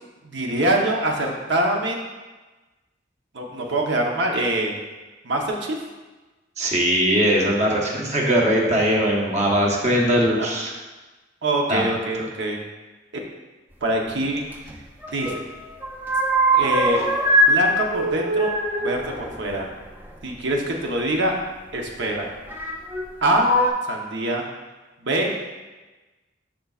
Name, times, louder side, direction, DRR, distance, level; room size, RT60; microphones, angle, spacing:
voice 1, 0.2-2.0 3.3-4.7 5.2-5.8 10.4-10.5 11.4-12.6 13.8-14.5 15.1-15.3 16.5-17.1 17.4-18.5 18.8-19.7 20.2-21.4 21.7-22.3 23.2-23.5 23.9-24.5 25.0-25.3, right 1 dB, 70° right, 1 dB, 1.0 m, -24 dB
voice 2, 6.6-10.7 11.7-11.8, equal, 40° right, -2 dB, 1.2 m, -20 dB
sound 1, 14.5-15.4 15.7-17.6 17.9-20.4 21.4-21.5 22.5-23.1 23.4-23.7, right 1 dB, 10° right, 0.5 m, -22 dB
11.0 x 3.9 x 2.4 m, 1.2 s
head